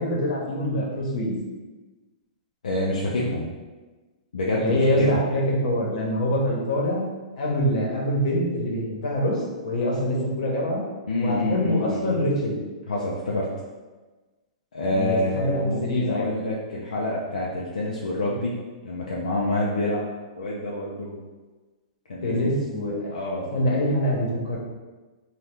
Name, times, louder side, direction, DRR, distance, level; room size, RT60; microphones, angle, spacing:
voice 1, 0.0-1.3 4.5-7.1 7.4-10.8 11.2-12.6 14.9-16.4 22.2-23.1 23.5-24.6, left 1 dB, 65° left, -3 dB, 1.0 m, -25 dB
voice 2, 2.6-3.5 4.3-5.2 11.1-12.1 12.9-13.5 14.7-18.6 18.8-21.2 22.1-22.5 23.1-23.6, left 1 dB, 90° left, -4 dB, 0.5 m, -27 dB
2.8 x 2.3 x 3.4 m, 1.2 s
hypercardioid pair, 130°, 4 cm